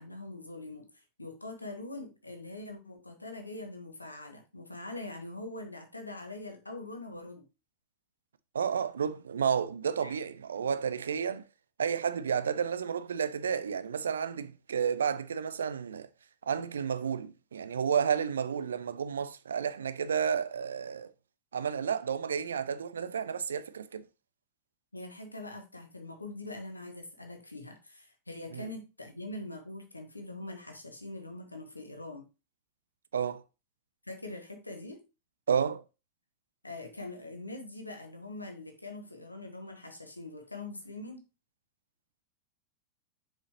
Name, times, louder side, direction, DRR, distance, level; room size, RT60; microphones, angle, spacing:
voice 1, 0.0-7.4 10.0-10.2 24.9-32.3 34.0-35.0 36.6-41.2, left 2 dB, 85° left, 1.2 m, -43 dB
voice 2, 8.5-11.4 11.8-16.1 16.5-21.1 21.5-24.1 28.5-28.6 33.1-33.4 35.5-35.8, right 7 dB, 70° right, 0.5 m, -31 dB
6.7 x 5.0 x 2.9 m
figure-of-eight pair, 90°, 0 cm